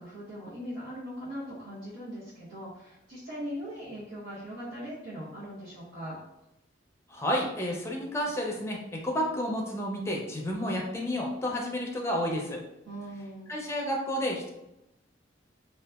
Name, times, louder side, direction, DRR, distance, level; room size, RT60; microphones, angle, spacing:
voice 1, 0.0-6.2 12.9-13.5, equal, 80° right, -11 dB, 0.9 m, -40 dB
voice 2, 7.1-12.6 13.5-14.5, equal, 15° left, -1 dB, 0.4 m, -31 dB
2.8 x 2.3 x 2.3 m, 0.88 s
head